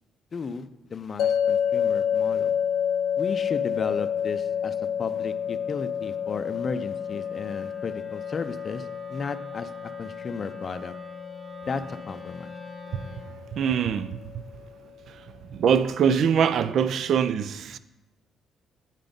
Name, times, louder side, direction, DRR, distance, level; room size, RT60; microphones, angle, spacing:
voice 1, 0.3-2.5 3.2-10.9 11.7-12.6, left 5 dB, 45° left, 0.5 m, -34 dB
sound 1, 1.2-14.3, left 8 dB, 75° left, 0.8 m, -29 dB
Wind instrument woodwind instrument, 1.8-13.4, left 1 dB, 20° left, 1.5 m, -47 dB
voice 2, 12.9-14.4 15.1-15.2 15.5-17.8, right 7 dB, 65° right, 0.4 m, -24 dB
9.0 x 3.8 x 5.1 m
cardioid pair, 90°, 0 cm